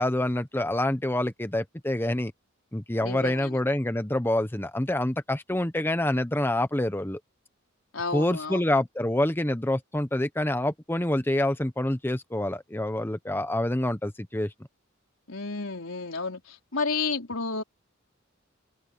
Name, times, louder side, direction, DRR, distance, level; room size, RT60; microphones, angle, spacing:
voice 1, 0.0-2.3 2.7-7.2 8.1-14.5, left 1 dB, 10° left, 0.9 m, -27 dB
voice 2, 3.0-3.6 7.9-8.6 15.3-17.6, left 4 dB, 85° left, 4.2 m, -31 dB
head